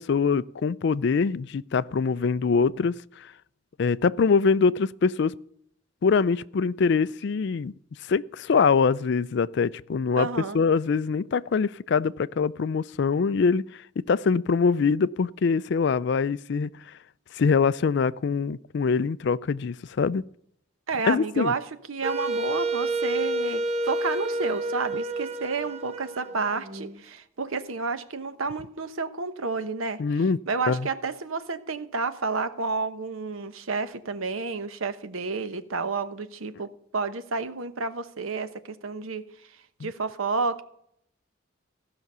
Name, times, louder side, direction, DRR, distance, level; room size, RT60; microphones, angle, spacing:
voice 1, 0.0-2.9 3.8-5.3 6.0-7.7 8.1-10.3 10.5-13.6 14.0-16.7 17.3-20.2 21.1-21.5 30.0-30.4 30.7-30.9 39.8-39.9, left 5 dB, 55° left, 0.4 m, -23 dB
voice 2, 10.2-10.6 20.9-21.6 21.9-30.0 30.5-39.2 39.8-40.6, right 4 dB, 80° right, 1.0 m, -30 dB
Wind instrument woodwind instrument, 22.0-27.0, right 2 dB, 30° right, 0.6 m, -29 dB
15.5 x 6.0 x 6.7 m
head